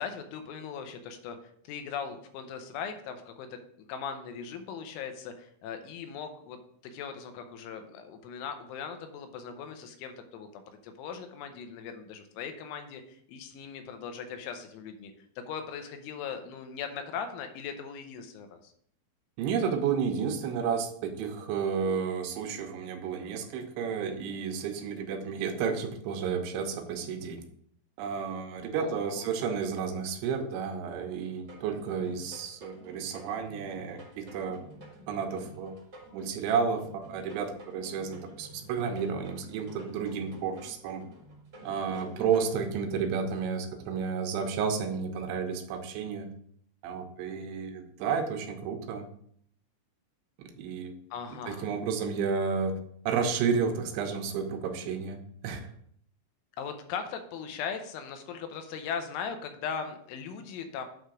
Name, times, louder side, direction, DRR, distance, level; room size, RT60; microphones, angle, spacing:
voice 1, 0.0-1.4 1.6-3.6 3.9-6.6 6.9-15.1 15.5-18.7 28.7-29.3 51.1-51.7 56.6-60.9, left 6 dB, 85° left, 7 dB, 3.3 m, -39 dB
voice 2, 19.4-27.4 28.0-34.6 35.1-35.8 36.1-41.0 41.6-46.3 46.8-49.1 50.4-50.9 51.5-52.7 53.1-55.7, right 6 dB, 85° right, 5 dB, 3.1 m, -31 dB
sound 1, 31.4-42.4, equal, 55° right, 1.2 m, -50 dB
8.5 x 3.3 x 6.1 m, 0.65 s
omnidirectional pair, 5.4 m